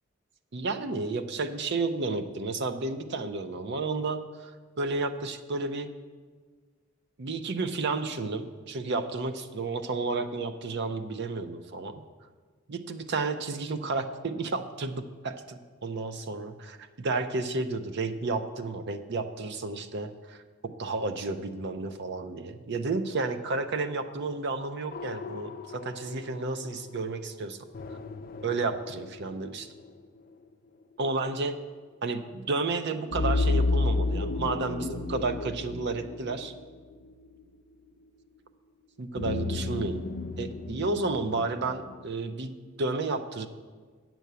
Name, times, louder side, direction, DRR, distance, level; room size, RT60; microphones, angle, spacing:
voice 1, 0.5-4.5 4.8-5.9 7.2-12.0 12.7-20.4 20.8-27.6 28.4-29.7 31.0-31.6 32.0-36.5 39.0-40.0 40.4-43.5, right 3 dB, 60° right, 9 dB, 0.6 m, -32 dB
sound 1, 24.9-26.7 27.7-29.9 33.1-36.8 39.2-42.0, left 3 dB, 45° left, 0.5 m, -32 dB
sound 2, 32.8-36.8, left 2 dB, 80° left, 0.8 m, -40 dB
9.2 x 6.1 x 6.8 m, 1.5 s
head